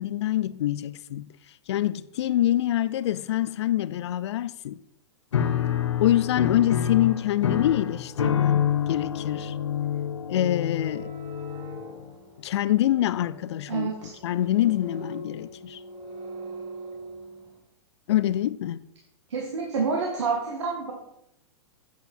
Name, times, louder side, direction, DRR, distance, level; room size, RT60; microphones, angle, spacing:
voice 1, 0.0-1.3 1.7-4.8 6.0-9.5 10.3-11.1 12.4-13.9 14.2-15.8 18.1-18.8, left 13 dB, 70° left, 0.5 m, -25 dB
Piano, 5.3-12.1, left 9 dB, 85° left, 1.2 m, -27 dB
sound 1, 10.6-17.6, right 1 dB, 30° right, 1.8 m, -42 dB
voice 2, 13.7-14.2 19.3-20.9, right 4 dB, 80° right, 1.9 m, -28 dB
8.3 x 8.1 x 4.4 m
hypercardioid pair, 125°, 15 cm